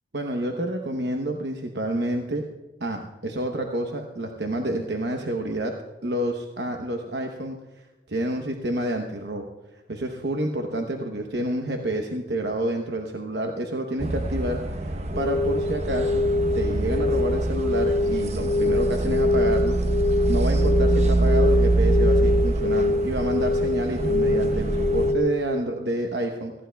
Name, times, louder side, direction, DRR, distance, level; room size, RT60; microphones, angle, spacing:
voice 1, 0.1-2.5 2.8-5.7 6.0-7.6 8.1-9.5 9.9-16.2 16.5-19.8 20.3-26.5, right 1 dB, 65° right, 3 dB, 0.9 m, -29 dB
sound 1, 14.0-25.1, right 2 dB, 40° right, 0.8 m, -25 dB
sound 2, 15.1-25.6, left 2 dB, 40° left, 0.8 m, -24 dB
19.5 x 15.0 x 2.3 m, 1.1 s
head